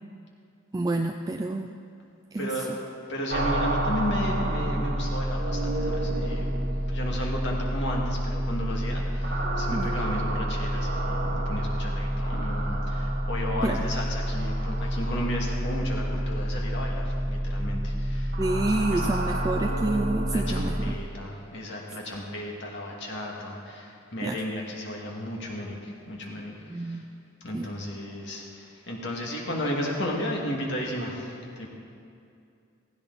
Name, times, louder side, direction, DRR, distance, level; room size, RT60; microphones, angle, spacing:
voice 1, 0.7-1.7 2.3-2.5 9.7-9.9 13.6-13.9 18.4-20.9 24.2-24.4 26.7-27.1 27.5-27.7, right 2 dB, 15° right, 4 dB, 0.3 m, -28 dB
voice 2, 2.4-2.7 3.1-6.5 6.9-18.4 18.7-19.5 20.3-27.0 27.4-31.7, left 1 dB, 55° left, -2 dB, 2.3 m, -34 dB
sound 1, 3.3-20.9, right 1 dB, 50° right, 1.4 m, -28 dB
16.0 x 15.5 x 4.1 m, 2.5 s
head